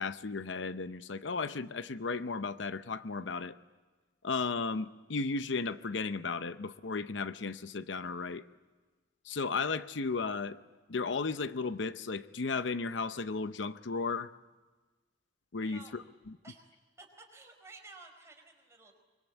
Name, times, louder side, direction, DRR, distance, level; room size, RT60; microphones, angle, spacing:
voice 1, 0.0-3.6 4.2-8.4 9.2-10.6 10.9-14.3 15.5-16.4, left 4 dB, 80° left, 13 dB, 0.7 m, -35 dB
voice 2, 15.6-15.9 16.4-16.6 17.0-18.9, right 3 dB, 15° right, 1 dB, 4.6 m, -53 dB
25.0 x 23.5 x 8.3 m, 1.3 s
head